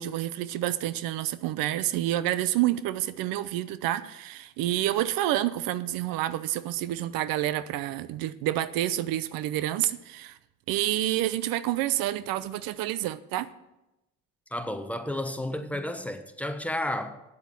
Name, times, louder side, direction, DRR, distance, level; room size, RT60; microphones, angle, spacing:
voice 1, 0.0-10.4 10.7-13.5, right 14 dB, 80° right, 0.7 m, -28 dB
voice 2, 14.5-17.2, left 1 dB, 5° left, 1.0 m, -32 dB
8.8 x 8.2 x 7.6 m
cardioid pair, 90°, 34 cm